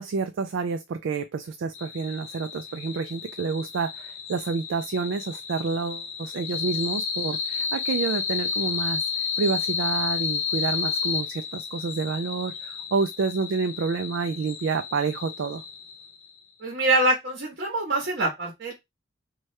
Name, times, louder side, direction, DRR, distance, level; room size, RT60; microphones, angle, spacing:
voice 1, 0.0-15.6, right 4 dB, 70° right, 0.3 m, -29 dB
sound 1, 1.7-16.3, left 6 dB, 85° left, 0.7 m, -32 dB
voice 2, 16.6-18.7, right 2 dB, 55° right, 0.9 m, -24 dB
2.9 x 2.3 x 3.1 m
head